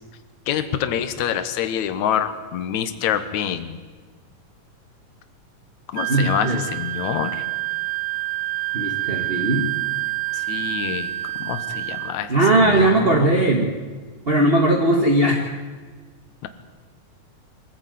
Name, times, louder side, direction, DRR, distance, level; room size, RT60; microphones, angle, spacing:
voice 1, 0.5-3.8 5.9-7.5 10.3-11.1 11.4-13.3 16.4-16.5, left 9 dB, 70° left, 10 dB, 2.5 m, -26 dB
Wind instrument woodwind instrument, 6.0-12.2, right 17 dB, 65° right, 1.6 m, -27 dB
voice 2, 6.1-6.6 8.7-9.7 12.3-13.8 14.3-15.5, right 2 dB, 25° right, 2 dB, 1.3 m, -19 dB
24.0 x 15.0 x 9.4 m, 1.4 s
omnidirectional pair, 3.6 m